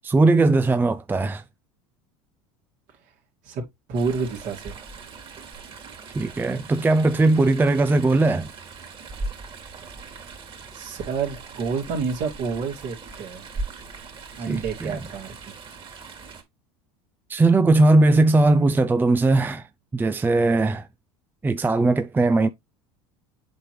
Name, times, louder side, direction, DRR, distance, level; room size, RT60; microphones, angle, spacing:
voice 1, 0.0-1.4 6.1-8.5 14.5-15.0 17.3-19.7 19.9-20.9 21.4-22.5, right 2 dB, 15° right, 0.5 m, -19 dB
Chatter / Stream, 3.9-16.4, right 3 dB, 35° right, 2.8 m, -39 dB
voice 2, 3.9-4.8 10.7-13.5 14.4-15.5, right 5 dB, 55° right, 2.7 m, -29 dB
8.0 x 4.5 x 3.3 m
hypercardioid pair, 85°, 15 cm